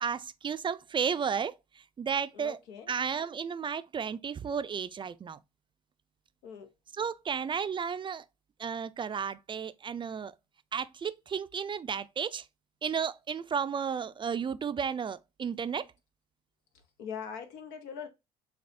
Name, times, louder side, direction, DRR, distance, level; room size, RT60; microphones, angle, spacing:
voice 1, 0.0-2.6 2.9-5.4 7.0-8.2 8.6-10.3 10.7-12.5 12.8-15.9, right 7 dB, 30° right, 0.4 m, -33 dB
voice 2, 2.3-2.9 6.4-6.7 17.0-18.1, left 7 dB, 80° left, 1.0 m, -41 dB
6.6 x 2.4 x 2.7 m
supercardioid pair, 75°, 16 cm